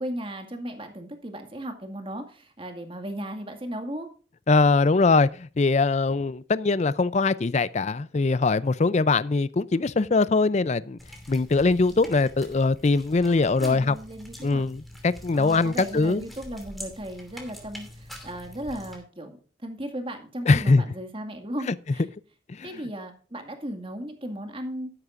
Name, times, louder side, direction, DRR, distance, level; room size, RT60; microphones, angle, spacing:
voice 1, 0.0-4.1 13.2-14.6 15.3-19.4 19.6-22.1 22.6-24.9, right 1 dB, 30° right, 2.0 m, -36 dB
voice 2, 4.5-11.0 11.3-14.0 14.4-16.2 20.5-20.8 22.6-22.7, left 3 dB, 35° left, 0.4 m, -22 dB
sound 1, 11.0-19.0, equal, ahead, 2.6 m, -45 dB
13.0 x 11.0 x 2.5 m
head